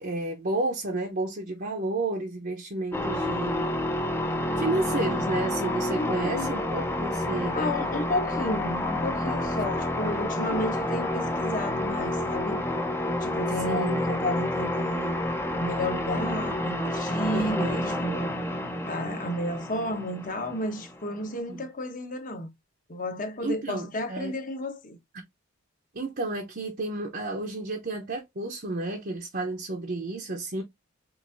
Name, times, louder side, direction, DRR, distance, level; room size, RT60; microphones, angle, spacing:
voice 1, 0.0-3.7 4.6-7.6 10.0-10.6 13.6-14.0 17.3-17.9 21.5-21.6 23.4-24.3 25.9-30.6, right 2 dB, 45° right, 0.8 m, -31 dB
sound 1, 2.9-21.2, left 1 dB, 10° left, 0.6 m, -29 dB
voice 2, 5.9-6.5 7.5-12.6 13.2-15.1 15.5-18.4 18.9-22.5 22.9-25.0, left 1 dB, 40° left, 1.0 m, -32 dB
6.1 x 2.6 x 2.6 m
head